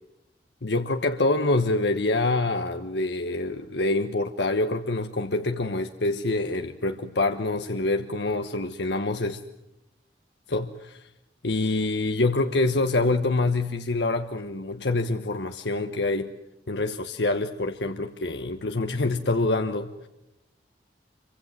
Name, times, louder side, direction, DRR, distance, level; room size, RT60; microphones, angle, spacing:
voice 1, 0.6-9.4 10.5-11.1 11.4-16.3 16.7-20.1, left 2 dB, 75° left, 7 dB, 1.2 m, -26 dB
27.0 x 24.5 x 7.5 m, 0.91 s
head